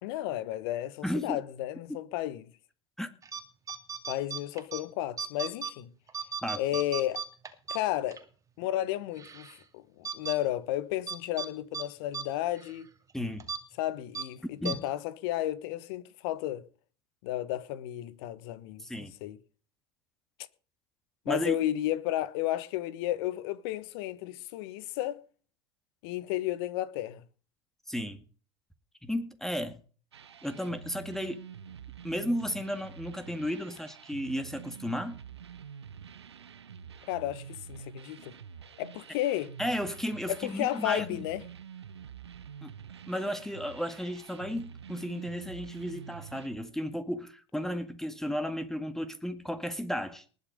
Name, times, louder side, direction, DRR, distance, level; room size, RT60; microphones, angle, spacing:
voice 1, 0.0-2.5 4.1-5.9 6.6-7.2 7.7-8.2 8.6-12.9 13.8-16.6 17.2-19.4 21.2-25.2 26.0-27.2 37.1-38.3 38.8-39.5 40.3-41.4, left 14 dB, 65° left, 1.2 m, -33 dB
voice 2, 1.0-1.4 1.9-2.0 3.0-3.1 6.4-6.6 13.1-13.5 14.6-14.8 18.8-19.1 21.3-21.6 27.9-28.3 29.0-29.8 30.4-31.4 32.0-35.2 39.6-41.2 42.6-42.7 43.1-50.2, equal, 5° left, 2.0 m, -34 dB
sound 1, 3.2-3.4 3.7-4.8 5.2-5.7 6.1-8.2 8.6-8.7 9.2-9.6 10.1-10.4 11.1-11.5 11.7-11.9 12.1-12.3 12.6-12.8 13.4-13.6 14.2-14.3 14.7-14.8, right 6 dB, 25° right, 2.3 m, -36 dB
sound 2, 30.1-46.5, right 7 dB, 90° right, 1.0 m, -47 dB
20.0 x 6.7 x 5.1 m
hypercardioid pair, 80°, 14 cm